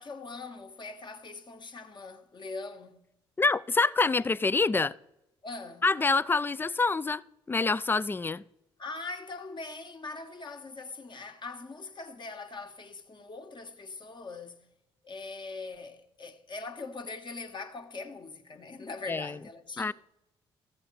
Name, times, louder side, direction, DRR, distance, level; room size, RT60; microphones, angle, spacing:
voice 1, 0.0-3.0 5.4-5.8 8.8-14.7 15.0-19.9, left 3 dB, 40° left, 1.4 m, -42 dB
voice 2, 3.4-4.9 5.8-7.2 7.5-8.4 19.1-19.3 19.8-19.9, left 3 dB, 15° left, 0.4 m, -26 dB
14.0 x 7.7 x 4.1 m
hypercardioid pair, 50°, 12 cm